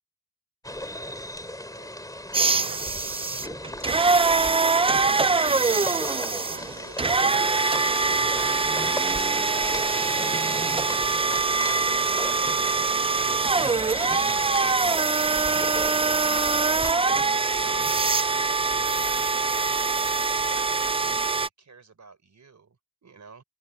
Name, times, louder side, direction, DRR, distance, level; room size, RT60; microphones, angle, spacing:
sound 1, 0.6-16.9, left 1 dB, 10° left, 3.2 m, -37 dB
voice 1, 0.7-1.2 1.5-5.2 5.5-13.4 13.8-15.2 15.9-20.0 20.3-23.4, right 4 dB, 40° right, 3.8 m, -51 dB
sound 2, 2.3-21.5, right 4 dB, 15° right, 0.3 m, -23 dB
open air
wide cardioid pair, 130°, 42 cm